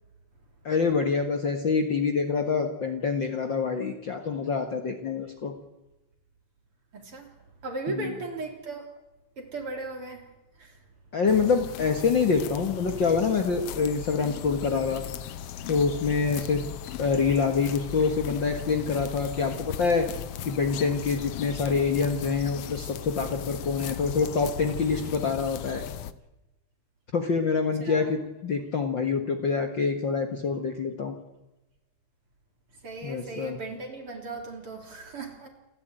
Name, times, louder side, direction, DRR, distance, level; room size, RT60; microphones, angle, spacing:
voice 1, 0.6-5.5 7.9-8.1 11.1-15.0 15.7-16.7 17.0-20.1 20.5-25.8 27.1-31.1 33.0-33.6, left 5 dB, 45° left, 5 dB, 1.9 m, -26 dB
voice 2, 6.9-7.3 7.6-8.9 9.4-10.2 10.6-10.8 27.8-28.2 32.8-35.5, right 3 dB, 45° right, 3 dB, 4.3 m, -37 dB
sound 1, 11.3-26.1, left 10 dB, 65° left, 1.6 m, -38 dB
29.0 x 13.5 x 9.0 m, 0.99 s
omnidirectional pair, 3.5 m